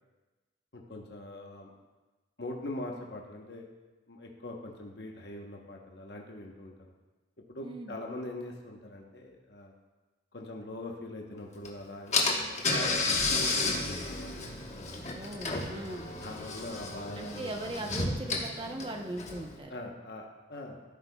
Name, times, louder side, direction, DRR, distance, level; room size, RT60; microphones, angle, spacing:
voice 1, 0.7-1.7 2.4-3.7 4.1-6.7 7.5-9.7 10.3-14.5 16.2-17.5 19.7-20.9, left 1 dB, 65° left, 0 dB, 1.0 m, -42 dB
voice 2, 7.6-8.0 15.2-16.1 17.2-19.8, right 1 dB, 30° right, 3 dB, 0.7 m, -39 dB
Car / Engine, 11.6-11.7 12.1-19.6, left 3 dB, 40° left, 1.2 m, -32 dB
14.5 x 8.3 x 2.3 m, 1.2 s
head